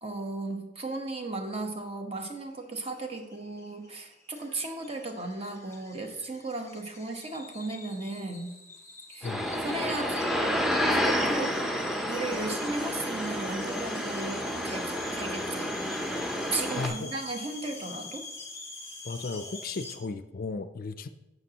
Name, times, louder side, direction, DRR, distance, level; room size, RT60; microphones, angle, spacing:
voice 1, 0.0-8.6 9.1-9.3 9.6-10.3 10.9-11.6 12.1-15.7 16.5-18.2, right 2 dB, 30° right, 4 dB, 1.1 m, -35 dB
sound 1, 2.6-20.0, left 3 dB, 15° left, 1.4 m, -45 dB
sound 2, 9.2-16.9, equal, ahead, 0.7 m, -30 dB
voice 2, 16.8-17.1 19.0-21.1, left 3 dB, 45° left, 11 dB, 0.4 m, -35 dB
11.0 x 7.7 x 2.9 m, 0.99 s
head